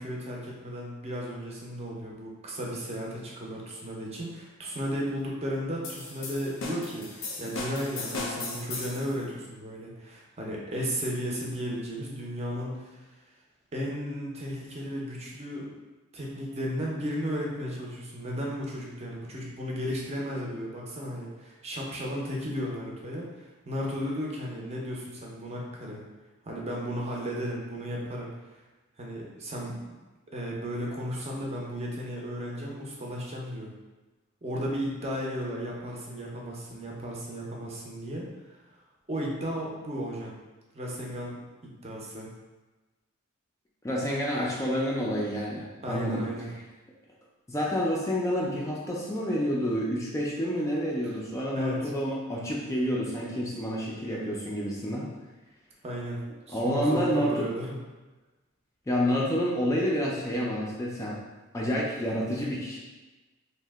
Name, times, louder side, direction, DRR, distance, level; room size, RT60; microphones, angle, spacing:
voice 1, 0.0-13.1 13.7-15.7 16.1-26.0 26.5-28.3 29.0-29.7 30.3-33.7 34.4-38.3 39.1-40.3 40.7-41.4 41.8-42.3 45.8-46.5 51.5-51.9 55.8-56.2 56.5-57.8, equal, 30° right, -3 dB, 0.5 m, -34 dB
sound 1, 5.8-9.1, left 3 dB, 70° left, 0.5 m, -36 dB
voice 2, 43.8-46.2 47.5-55.1 56.5-57.5 58.9-61.2 61.5-62.8, equal, 15° left, -4 dB, 0.3 m, -29 dB
2.7 x 2.1 x 3.3 m, 1.2 s
head